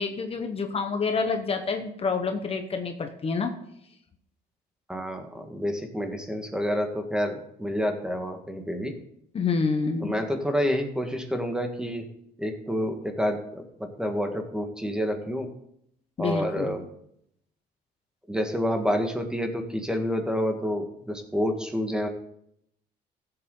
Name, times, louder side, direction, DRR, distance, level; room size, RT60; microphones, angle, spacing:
voice 1, 0.0-3.5 9.3-10.1 16.2-16.8, left 4 dB, 35° left, 5 dB, 1.1 m, -28 dB
voice 2, 4.9-8.9 10.0-12.0 12.4-15.5 16.2-16.8 18.3-22.1, equal, 5° right, 5 dB, 1.7 m, -28 dB
15.0 x 7.9 x 3.9 m, 0.73 s
cardioid pair, 110°, 17 cm